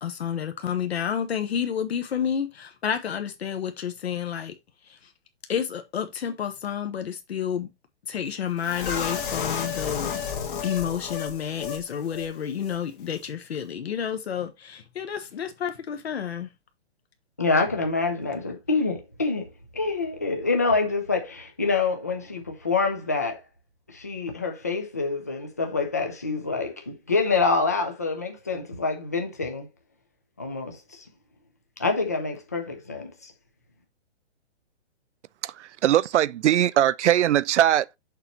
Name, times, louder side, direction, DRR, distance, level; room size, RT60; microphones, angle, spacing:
voice 1, 0.0-4.5 4.9-5.1 5.5-7.7 8.1-10.2 10.6-16.5, left 8 dB, 65° left, 1.1 m, -30 dB
sound 1, 8.6-11.8 12.1-12.3 12.6-12.8, left 7 dB, 45° left, 1.8 m, -31 dB
voice 2, 17.4-19.5 19.7-23.4 23.9-29.7 30.4-31.0 31.8-33.3, left 4 dB, 15° left, 0.4 m, -26 dB
voice 3, 35.4-38.0, right 12 dB, 90° right, 0.5 m, -21 dB
6.6 x 3.0 x 5.3 m
hypercardioid pair, 175°, 34 cm